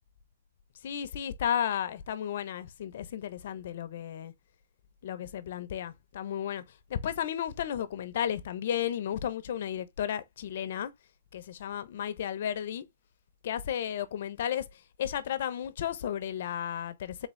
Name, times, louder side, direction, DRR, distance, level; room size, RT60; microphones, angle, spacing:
voice 1, 0.8-4.3 5.0-6.6 6.9-10.9 11.3-12.8 13.4-17.3, left 9 dB, 60° left, 0.7 m, -33 dB
3.8 x 3.6 x 3.1 m
hypercardioid pair, 150°, 0 cm